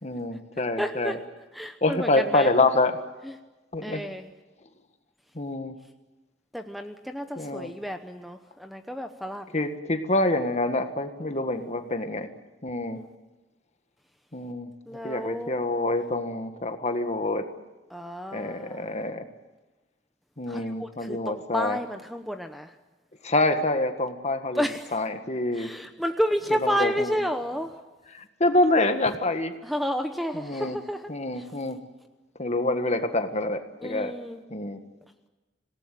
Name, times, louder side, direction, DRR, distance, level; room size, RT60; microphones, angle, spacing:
voice 1, 0.0-1.2 1.8-3.0 3.7-4.0 5.3-5.7 7.4-7.7 9.5-12.3 12.6-13.0 14.3-14.7 15.0-17.4 18.3-19.2 20.4-21.8 23.2-24.6 24.9-25.7 26.6-27.1 28.1-29.5 30.3-30.8 31.1-31.8 32.4-34.1 34.5-34.8, left 2 dB, 35° left, 7 dB, 1.7 m, -26 dB
voice 2, 0.8-1.2 1.5-2.5 3.2-3.3 3.8-4.3 6.5-9.6 11.5-11.9 12.9-13.1 14.9-15.6 17.9-18.9 20.5-22.7 24.5-25.0 25.5-27.8 29.6-31.5 33.8-34.4, equal, ahead, 7 dB, 0.9 m, -31 dB
26.5 x 18.0 x 9.2 m, 1.2 s
head